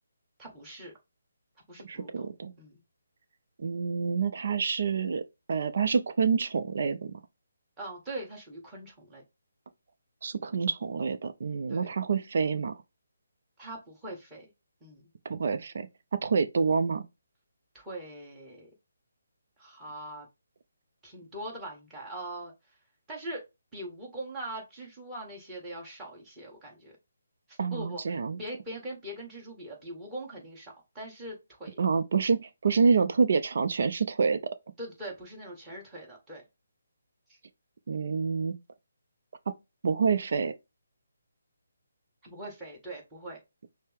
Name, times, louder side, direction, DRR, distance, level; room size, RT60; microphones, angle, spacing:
voice 1, 0.4-0.9 1.7-2.3 2.6-2.8 7.8-9.2 11.7-11.9 13.6-14.5 14.8-15.0 17.7-18.7 19.6-20.3 21.0-22.5 23.1-23.4 23.7-26.9 27.5-31.8 34.8-36.4 37.3-37.4 42.2-43.4, right 1 dB, 10° right, 1.8 m, -42 dB
voice 2, 1.8-2.5 3.6-5.2 5.5-7.2 10.2-12.7 15.2-15.9 16.2-17.0 27.6-28.4 31.8-34.4 37.9-38.5 39.8-40.5, right 5 dB, 55° right, 0.6 m, -27 dB
6.3 x 2.1 x 3.5 m
figure-of-eight pair, 155°, 0 cm